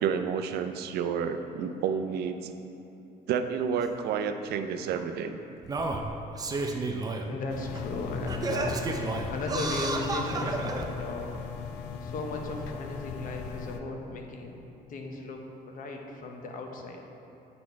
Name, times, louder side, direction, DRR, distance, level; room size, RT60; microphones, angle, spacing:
voice 1, 0.0-2.5 3.3-5.4, right 7 dB, 70° right, 8 dB, 0.5 m, -30 dB
Singing, 3.8-3.9 4.9-5.0 5.6-7.3 7.7-7.8 8.3-10.9 11.6-11.7, right 3 dB, 20° right, 0.5 m, -32 dB
voice 2, 7.2-8.8 9.3-11.4 12.0-14.6 14.9-17.0, left 2 dB, 55° left, 2 dB, 0.9 m, -36 dB
sound 1, 7.5-13.8, left 6 dB, 85° left, 0.5 m, -38 dB
8.6 x 4.2 x 4.6 m, 2.9 s
cardioid pair, 110°, 17 cm